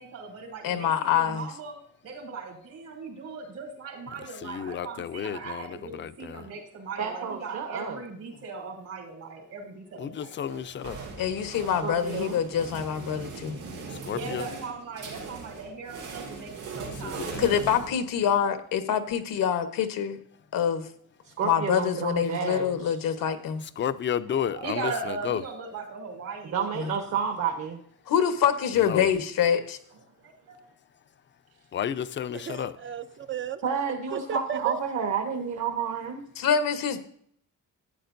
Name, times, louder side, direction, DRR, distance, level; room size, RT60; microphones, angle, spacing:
voice 1, 0.0-1.8 2.0-10.4 14.0-17.6 22.8-23.4 24.3-27.0 30.2-30.6, right 4 dB, 75° right, 3.3 m, -39 dB
voice 2, 0.6-1.5 11.2-13.6 17.4-20.2 20.5-20.9 21.4-23.6 26.8-26.9 28.1-29.8 36.4-37.0, left 8 dB, 90° left, 1.2 m, -25 dB
voice 3, 4.2-6.5 10.0-11.0 13.9-14.5 16.8-17.6 23.6-25.4 28.7-29.1 31.7-32.8, left 9 dB, 35° left, 0.4 m, -32 dB
voice 4, 7.0-8.0 11.8-12.4 21.2-22.8 26.5-27.8 33.6-36.2, right 6 dB, 55° right, 1.2 m, -30 dB
sound 1, 10.5-18.4, right 4 dB, 90° right, 3.5 m, -40 dB
voice 5, 32.3-33.6 34.1-34.8, right 8 dB, 40° right, 0.5 m, -34 dB
13.0 x 9.1 x 2.6 m
cardioid pair, 160°, 33 cm